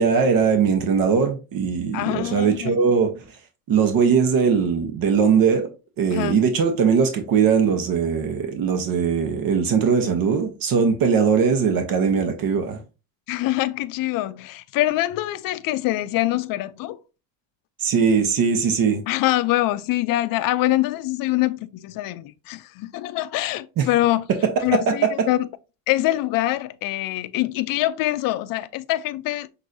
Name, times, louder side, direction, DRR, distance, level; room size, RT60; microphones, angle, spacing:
voice 1, 0.0-3.1 3.7-5.7 6.0-12.8 17.8-19.0 23.8-23.9 24.7-24.9, right 6 dB, 55° right, 1.0 m, -20 dB
voice 2, 1.9-2.7 6.1-6.4 13.3-17.0 19.1-24.3 24.6-25.5 25.9-29.5, left 16 dB, 55° left, 0.5 m, -24 dB
5.9 x 2.7 x 2.6 m
supercardioid pair, 85°, 42 cm